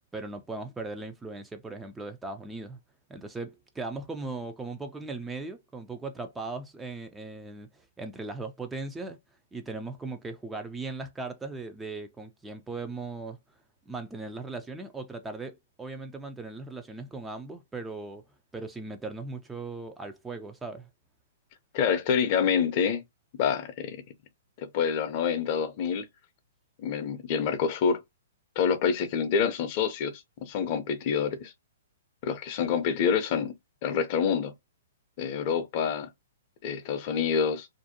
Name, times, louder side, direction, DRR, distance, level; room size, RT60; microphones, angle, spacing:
voice 1, 0.1-2.8 3.1-9.2 9.5-13.4 13.9-18.2 18.5-20.9, right 3 dB, 10° right, 0.3 m, -38 dB
voice 2, 21.7-23.0 23.4-24.0 24.6-26.1 26.8-28.0 28.6-31.5 32.2-33.5 33.8-34.5 35.2-36.1 36.6-37.7, left 7 dB, 45° left, 0.5 m, -27 dB
2.5 x 2.1 x 2.6 m
hypercardioid pair, 125°, 0 cm